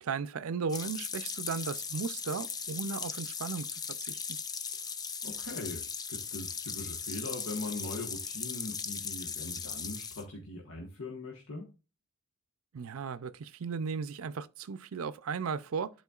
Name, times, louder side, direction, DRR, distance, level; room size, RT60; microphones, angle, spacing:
voice 1, 0.0-3.7 4.0-4.4 12.7-15.9, right 5 dB, 85° right, 0.5 m, -36 dB
sound 1, 0.7-10.2, left 6 dB, 20° left, 0.4 m, -38 dB
voice 2, 5.2-11.7, left 2 dB, 75° left, 1.3 m, -41 dB
11.0 x 4.4 x 2.4 m
head